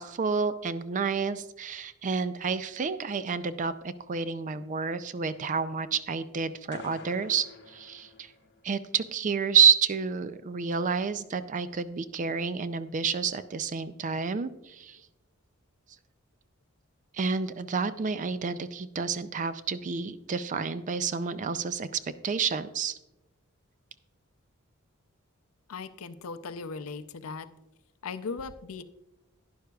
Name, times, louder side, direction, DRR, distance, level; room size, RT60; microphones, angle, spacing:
voice 1, 0.0-8.3 8.6-15.0 17.1-23.0, right 6 dB, 35° right, 13 dB, 0.4 m, -29 dB
sound 1, 6.7-8.8, left 3 dB, 50° left, 0.8 m, -48 dB
voice 2, 25.7-27.5 28.0-28.8, left 4 dB, 80° left, 12 dB, 0.5 m, -38 dB
11.5 x 10.0 x 2.3 m, 0.94 s
head